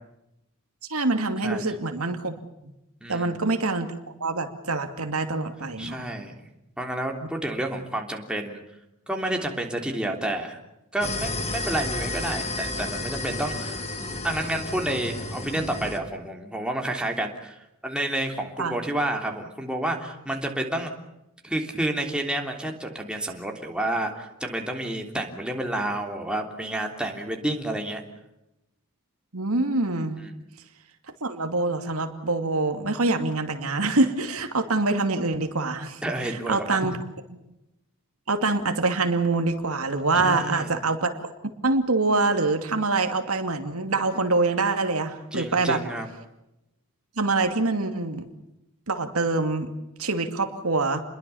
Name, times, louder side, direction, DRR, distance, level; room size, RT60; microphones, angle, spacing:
voice 1, 0.9-2.3 2.6-2.7 3.1-3.9 4.2-6.1 18.6-18.8 29.3-30.2 31.2-36.0 36.5-36.9 37.3-37.4 38.3-41.3 41.6-45.8 47.2-48.2 48.9-49.7 50.0-51.0, right 3 dB, 70° right, 6 dB, 2.5 m, -25 dB
voice 2, 3.0-3.4 5.8-6.5 6.8-8.6 9.1-10.6 10.9-13.9 14.2-17.6 17.8-20.9 21.4-28.0 30.2-30.4 36.0-36.8 40.1-40.7 45.3-46.1, right 1 dB, 5° right, 1 dB, 3.2 m, -30 dB
sound 1, 11.0-16.0, left 2 dB, 30° left, 2.7 m, -32 dB
29.5 x 22.0 x 7.1 m, 0.89 s
head